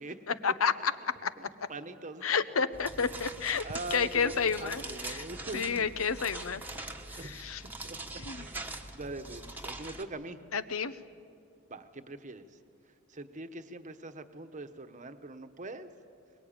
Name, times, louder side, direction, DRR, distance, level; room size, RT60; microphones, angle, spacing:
voice 1, 0.3-1.3 2.2-3.6 3.9-5.2 5.5-6.6 7.1-7.6 8.2-8.5 10.5-10.9, left 6 dB, 75° left, 14 dB, 0.9 m, -30 dB
voice 2, 1.4-2.2 3.6-5.9 7.2-7.5 7.8-8.6 8.9-10.4 11.7-12.5 13.1-15.9, right 2 dB, 35° right, 9 dB, 1.1 m, -42 dB
sound 1, 2.7-10.0, right 2 dB, 10° right, 1.3 m, -43 dB
23.5 x 22.0 x 8.8 m, 2.5 s
head